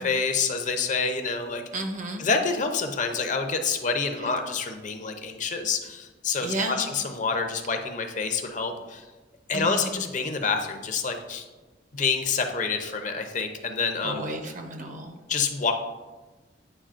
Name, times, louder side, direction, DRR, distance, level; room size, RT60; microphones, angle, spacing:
voice 1, 0.0-1.6 2.2-9.0 9.5-11.4 11.9-14.3 15.3-15.7, left 5 dB, 45° left, 6 dB, 0.6 m, -27 dB
voice 2, 1.7-2.3 4.2-4.3 6.4-6.8 9.5-9.8 14.0-15.2, right 1 dB, 45° right, 4 dB, 0.7 m, -32 dB
8.7 x 4.8 x 2.5 m, 1.2 s
head